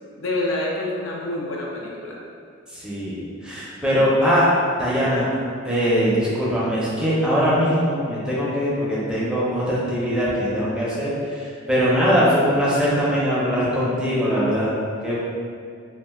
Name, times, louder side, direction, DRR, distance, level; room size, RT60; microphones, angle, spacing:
voice 1, 0.2-2.2 4.0-4.1, left 2 dB, 70° left, -3 dB, 0.5 m, -27 dB
voice 2, 2.7-4.5 4.8-5.3 5.6-11.1 11.4-14.7 15.0-15.2, equal, 5° right, -8 dB, 0.5 m, -21 dB
2.4 x 2.2 x 3.4 m, 2.3 s
head